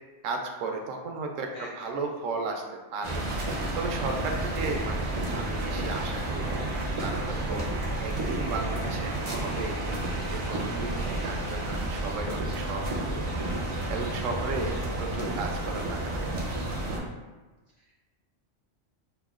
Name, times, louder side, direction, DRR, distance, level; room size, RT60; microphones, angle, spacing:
voice 1, 0.2-2.6 2.9-3.2 3.8-7.6 8.0-9.7 10.3-13.2 13.9-16.4, right 3 dB, 85° right, 3 dB, 0.9 m, -35 dB
voice 2, 1.5-1.9 4.1-4.5 14.2-14.6 17.8-18.0, left 1 dB, 65° left, -5 dB, 0.4 m, -47 dB
sound 1, 3.0-17.0, right 1 dB, 45° right, 0.5 m, -31 dB
5.6 x 2.2 x 2.4 m, 1.2 s
omnidirectional pair, 1.3 m